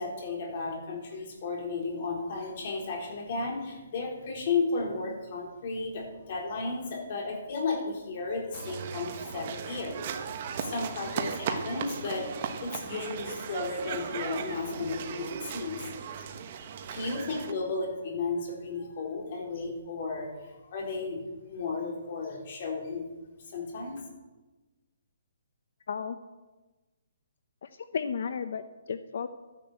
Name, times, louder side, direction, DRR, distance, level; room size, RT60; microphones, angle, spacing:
voice 1, 0.0-10.0 10.5-15.9 16.2-16.3 16.9-23.1 23.5-24.0, left 3 dB, 40° left, 0 dB, 3.8 m, -34 dB
sound 1, 8.5-17.5, right 7 dB, 35° right, 1.2 m, -37 dB
voice 2, 25.9-26.2 27.6-29.3, left 6 dB, 55° left, 10 dB, 0.8 m, -34 dB
12.5 x 10.5 x 7.8 m, 1.2 s
hypercardioid pair, 170°, 0 cm